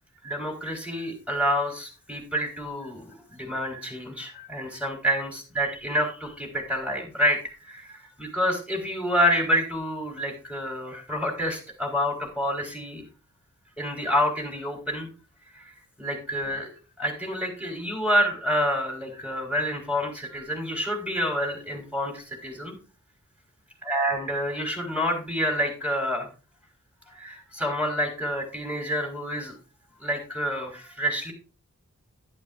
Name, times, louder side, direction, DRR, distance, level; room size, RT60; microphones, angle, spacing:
voice 1, 0.2-7.4 7.7-13.0 13.8-15.1 15.5-16.7 17.0-22.8 23.9-26.3 27.1-29.5 30.0-31.3, equal, 5° right, 1 dB, 4.3 m, -28 dB
11.5 x 10.5 x 2.5 m, 0.33 s
wide cardioid pair, 65°, 31 cm